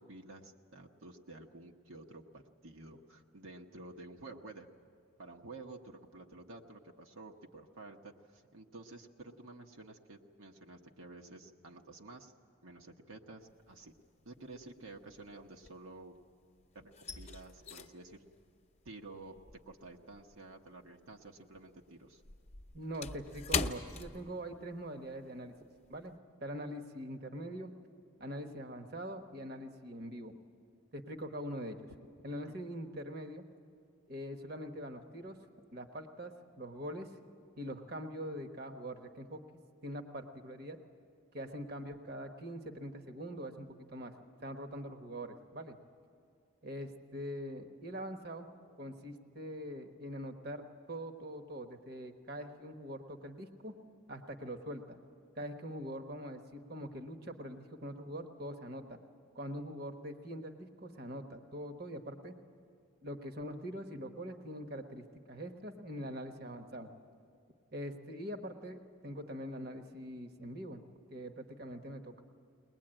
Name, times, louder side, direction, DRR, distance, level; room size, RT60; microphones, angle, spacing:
voice 1, 0.0-4.7 5.2-12.3 12.6-13.9 14.2-16.1 16.7-18.2 18.8-19.4 19.7-22.2 32.5-32.6, right 2 dB, 70° right, 2 dB, 1.1 m, -51 dB
sound 1, 13.5-14.0 14.3-16.3 16.6-21.3 21.5-24.9 25.2-25.4 25.8-26.1, left 4 dB, 30° left, 0.7 m, -41 dB
voice 2, 22.7-25.5 25.9-27.7 28.2-30.3 30.9-31.8 32.2-33.5 34.1-35.4 35.7-37.1 37.6-39.4 39.8-40.8 41.3-44.1 44.4-45.8 46.6-48.5 48.8-53.7 54.1-55.0 55.4-59.0 59.3-62.3 63.0-66.9 67.7-70.8 71.1-72.2, equal, 45° right, 6 dB, 1.2 m, -43 dB
22.0 x 20.0 x 8.9 m, 2.4 s
head